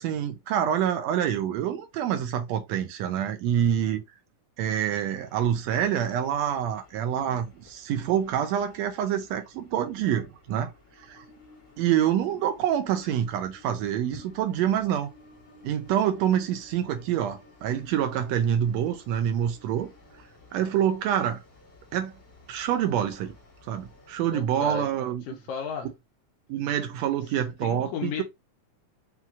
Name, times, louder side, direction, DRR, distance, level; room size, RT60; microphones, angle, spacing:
voice 1, 0.0-4.0 4.6-10.7 11.1-11.2 11.8-15.1 15.6-19.9 20.5-21.4 21.9-22.1 22.5-23.4 23.7-25.2 26.5-28.2, right 10 dB, 75° right, 1.7 m, -26 dB
Train, 5.1-24.5, left 2 dB, 35° left, 1.5 m, -55 dB
voice 2, 24.3-24.9 25.3-25.9 27.6-28.2, left 7 dB, 75° left, 1.4 m, -34 dB
5.8 x 2.7 x 2.4 m
omnidirectional pair, 3.5 m